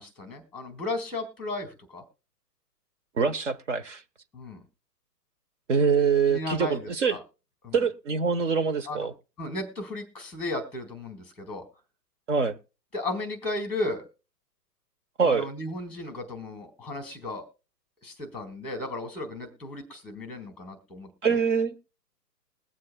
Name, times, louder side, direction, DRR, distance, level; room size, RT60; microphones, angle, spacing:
voice 1, 0.0-2.0 4.3-4.6 6.3-7.2 7.6-7.8 8.9-9.1 9.4-11.7 12.9-14.0 15.2-17.5 18.0-21.4, left 2 dB, ahead, 1.7 m, -35 dB
voice 2, 3.2-4.0 5.7-7.2 7.7-9.1 12.3-12.6 15.2-15.5 21.2-21.7, right 5 dB, 50° right, 1.1 m, -24 dB
21.5 x 7.5 x 2.2 m
figure-of-eight pair, 130°, 49 cm